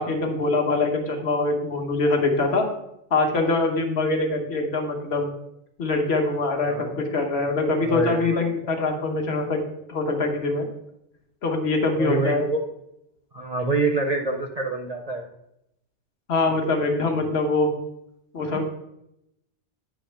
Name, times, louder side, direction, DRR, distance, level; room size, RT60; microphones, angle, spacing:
voice 1, 0.0-2.7 3.1-5.3 5.8-9.6 9.9-10.7 11.4-12.5 16.3-17.7 18.3-18.7, left 3 dB, 60° left, 3 dB, 1.3 m, -23 dB
voice 2, 6.7-7.0 7.8-8.4 8.7-8.8 12.0-12.6 13.3-15.3 18.5-18.7, right 3 dB, 45° right, 3 dB, 0.5 m, -26 dB
8.7 x 3.1 x 5.6 m, 0.82 s
omnidirectional pair, 1.2 m